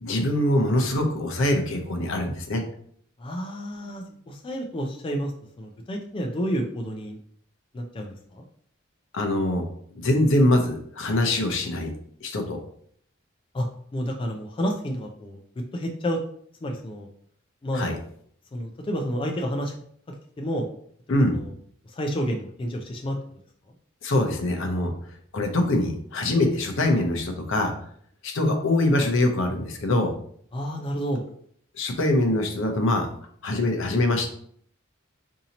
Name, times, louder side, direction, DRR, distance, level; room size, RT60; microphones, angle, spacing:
voice 1, 0.0-2.6 9.1-9.7 9.9-11.9 12.2-12.6 17.7-18.0 21.1-21.4 24.0-24.9 25.3-27.7 28.2-30.1 31.8-33.1 33.4-34.3, left 1 dB, 65° left, 4 dB, 0.6 m, -23 dB
voice 2, 3.2-5.3 5.6-7.2 7.7-8.4 13.5-13.7 13.9-15.4 15.7-16.2 16.6-17.1 17.6-17.9 18.5-19.7 20.4-20.7 21.1-21.5 21.8-23.2 30.5-31.2, equal, 25° left, 2 dB, 0.3 m, -30 dB
2.8 x 2.7 x 3.9 m, 0.62 s
head